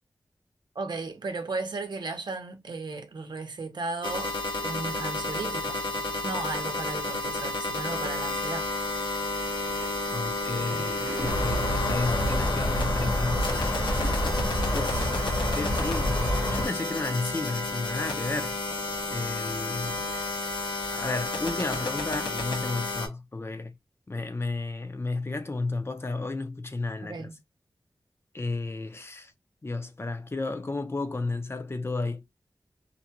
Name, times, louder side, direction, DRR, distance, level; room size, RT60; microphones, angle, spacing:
voice 1, 0.7-5.9 6.2-8.7 27.1-27.4, right 3 dB, 70° right, 0.7 m, -35 dB
sound 1, 4.0-23.1, left 2 dB, 90° left, 0.9 m, -31 dB
sound 2, 9.4-14.5, right 1 dB, 25° right, 0.7 m, -43 dB
voice 2, 10.1-13.8 14.7-15.2 15.5-18.6 19.1-20.0 20.9-23.7 24.1-27.3 28.3-29.3 29.6-32.2, left 3 dB, 30° left, 0.5 m, -32 dB
sound 3, 11.2-16.7, equal, 50° left, 1.0 m, -28 dB
2.6 x 2.1 x 2.8 m
wide cardioid pair, 80°, 8 cm